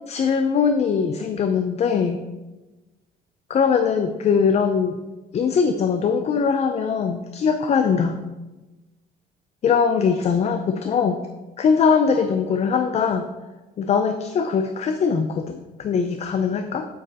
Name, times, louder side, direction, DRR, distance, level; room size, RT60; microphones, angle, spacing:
voice 1, 0.1-2.2 3.5-5.0 5.3-8.2 9.6-11.2 11.6-13.3 13.8-16.9, left 6 dB, 40° left, 8 dB, 0.5 m, -21 dB
7.6 x 4.9 x 4.1 m, 1.1 s
cardioid pair, 110°, 17 cm